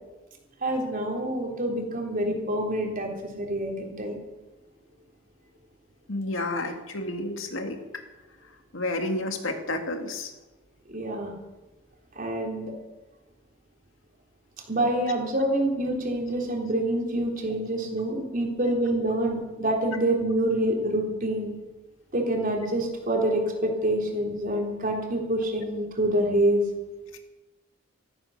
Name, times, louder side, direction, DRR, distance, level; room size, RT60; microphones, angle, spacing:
voice 1, 0.6-3.1 3.4-4.2 10.9-11.3 12.2-12.7 14.7-21.5 22.1-26.6, right 1 dB, 45° right, 1 dB, 3.7 m, -26 dB
voice 2, 6.1-7.8 8.7-10.3, left 2 dB, 85° left, 5 dB, 2.2 m, -30 dB
14.5 x 14.0 x 6.7 m, 1.1 s
head